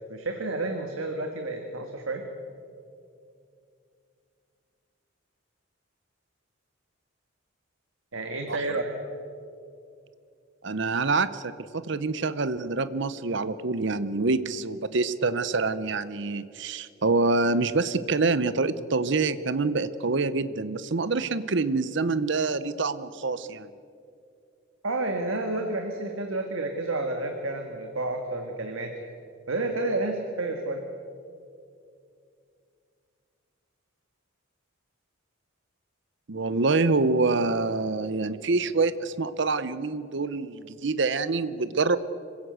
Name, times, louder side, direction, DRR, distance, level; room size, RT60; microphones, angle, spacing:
voice 1, 0.1-2.3 8.1-8.9 24.8-28.9 29.5-30.8, right 2 dB, 85° right, 4 dB, 1.9 m, -30 dB
voice 2, 10.6-23.7 36.3-42.0, right 3 dB, 60° right, 14 dB, 0.7 m, -26 dB
25.5 x 16.5 x 8.1 m, 2.5 s
head